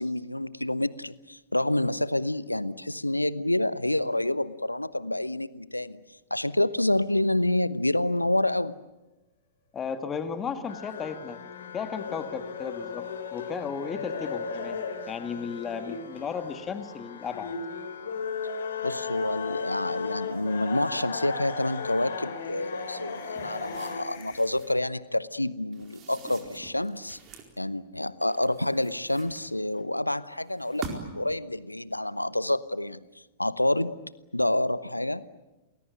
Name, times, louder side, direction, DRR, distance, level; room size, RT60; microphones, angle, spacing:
voice 1, 0.0-6.0 6.3-8.8 18.8-27.2 27.6-33.0 33.4-34.0 34.3-35.2, left 1 dB, 85° left, 17 dB, 0.9 m, -28 dB
sound 1, 9.5-10.4 10.7-10.8 11.1-11.2 15.4-24.4, left 10 dB, 45° left, 5.6 m, -51 dB
voice 2, 9.7-11.4 11.7-17.5, left 6 dB, 20° left, 8 dB, 1.8 m, -35 dB
sound 2, 10.7-24.0, left 5 dB, 60° left, 3.7 m, -36 dB
sound 3, 23.2-24.8 25.7-27.6 28.2-29.8 30.5-31.3, right 5 dB, 30° right, 4.4 m, -45 dB
29.0 x 20.5 x 9.2 m, 1.1 s
figure-of-eight pair, 100°, 0 cm